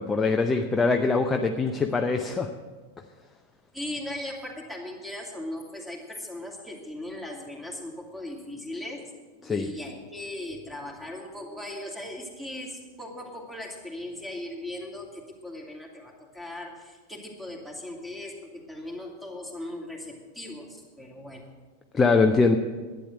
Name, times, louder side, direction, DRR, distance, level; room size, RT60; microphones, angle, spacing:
voice 1, 0.0-2.5 9.4-9.7 21.9-22.6, left 4 dB, 15° left, 4 dB, 0.7 m, -23 dB
voice 2, 3.7-9.0 9.3-21.5, left 1 dB, 5° right, 0 dB, 2.5 m, -38 dB
11.5 x 9.2 x 7.7 m, 1.4 s
figure-of-eight pair, 90°, 0 cm